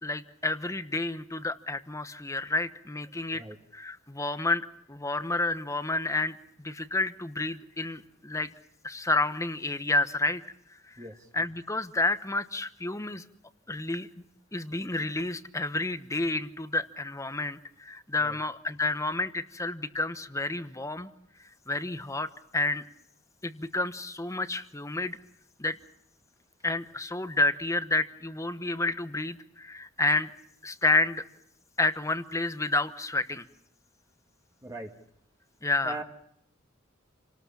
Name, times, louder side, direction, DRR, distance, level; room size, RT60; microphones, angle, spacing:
voice 1, 0.0-3.4 3.7-8.5 8.8-10.4 10.7-11.0 11.3-13.2 13.7-14.2 14.5-21.1 21.7-22.8 23.4-25.2 25.6-25.8 26.6-30.3 30.6-31.2 31.8-33.4 35.6-36.0, left 2 dB, 15° left, 11 dB, 1.0 m, -30 dB
voice 2, 34.6-34.9 35.8-36.0, right 2 dB, 15° right, 3 dB, 1.7 m, -39 dB
29.0 x 19.0 x 7.0 m, 0.76 s
head